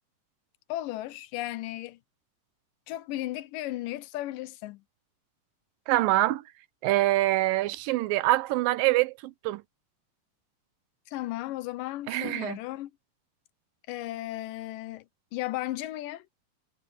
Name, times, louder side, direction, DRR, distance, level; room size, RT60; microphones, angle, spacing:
voice 1, 0.7-2.0 2.9-4.8 11.1-12.9 13.9-15.1 15.3-16.3, left 16 dB, 80° left, 2.3 m, -35 dB
voice 2, 5.9-6.4 6.8-9.6 12.1-12.6, right 17 dB, 90° right, 2.5 m, -25 dB
omnidirectional pair, 3.9 m